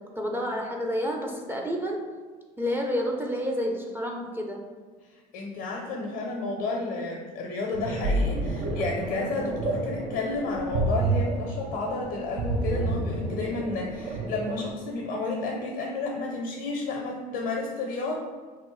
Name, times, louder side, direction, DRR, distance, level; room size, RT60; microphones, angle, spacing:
voice 1, 0.2-2.0 2.6-4.6, equal, 10° right, 0 dB, 0.4 m, -29 dB
voice 2, 5.3-18.2, left 3 dB, 75° left, -1 dB, 0.5 m, -31 dB
sound 1, 7.7-14.7, right 2 dB, 70° right, 0.5 m, -29 dB
2.9 x 2.1 x 3.0 m, 1.5 s
hypercardioid pair, 65°, 18 cm